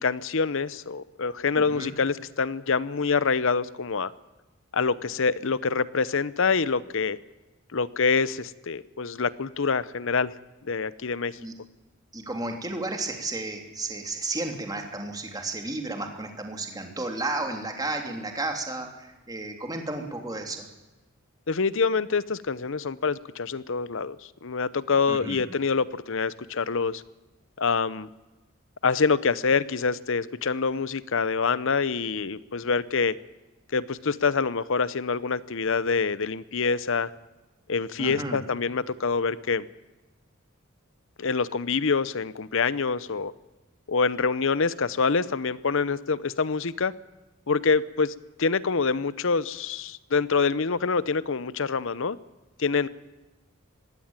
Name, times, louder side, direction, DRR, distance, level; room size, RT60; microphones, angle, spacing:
voice 1, 0.0-4.1 4.7-7.2 7.7-10.3 10.6-11.4 21.5-24.2 24.4-27.0 27.6-28.1 28.8-33.1 33.7-37.1 37.7-39.7 41.2-43.3 43.9-46.9 47.5-48.1 48.4-52.2 52.6-52.9, left 5 dB, 65° left, 17 dB, 0.8 m, -26 dB
voice 2, 1.6-1.9 11.4-11.5 12.1-20.6 25.1-25.4 38.0-38.4, right 2 dB, 20° right, 3 dB, 3.1 m, -33 dB
21.0 x 16.5 x 8.9 m, 1.1 s
head